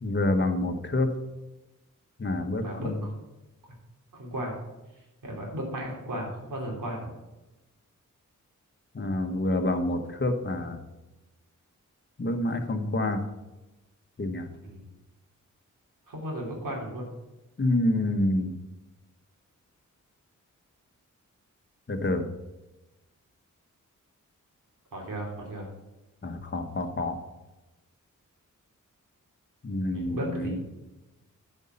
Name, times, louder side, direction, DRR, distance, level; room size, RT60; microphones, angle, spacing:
voice 1, 0.0-1.1 2.2-3.0 8.9-10.8 12.2-13.2 14.2-14.5 17.6-18.5 21.9-22.2 26.2-27.2 29.6-30.6, left 1 dB, 35° left, 6 dB, 1.1 m, -27 dB
voice 2, 2.6-3.1 4.1-4.5 5.2-7.1 14.6-14.8 16.1-17.1 24.9-25.7 29.9-30.6, right 1 dB, 80° right, -1 dB, 3.0 m, -35 dB
9.1 x 5.4 x 5.5 m, 1.0 s
wide cardioid pair, 90°, 31 cm